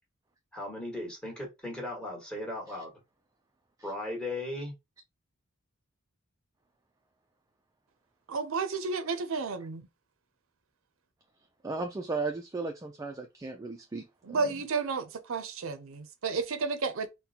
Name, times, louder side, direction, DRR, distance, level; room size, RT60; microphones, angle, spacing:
voice 1, 0.5-2.9 3.8-4.7, left 1 dB, 5° left, 1.4 m, -37 dB
voice 2, 8.3-9.9 14.2-17.1, right 4 dB, 70° right, 0.5 m, -32 dB
voice 3, 11.6-14.4, right 3 dB, 15° right, 0.3 m, -35 dB
4.1 x 2.1 x 2.7 m
head